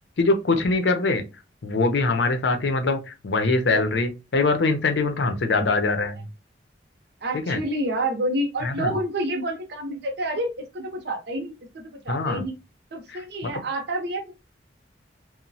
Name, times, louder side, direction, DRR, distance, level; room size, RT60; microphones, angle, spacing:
voice 1, 0.2-1.2 1.6-6.2 7.5-7.6 8.6-8.9 12.1-12.4 13.1-13.5, left 3 dB, 70° left, 6 dB, 0.6 m, -23 dB
voice 2, 5.5-6.2 7.2-12.5 12.9-14.3, right 1 dB, 65° right, 4 dB, 0.6 m, -29 dB
2.9 x 2.1 x 2.6 m, 0.28 s
head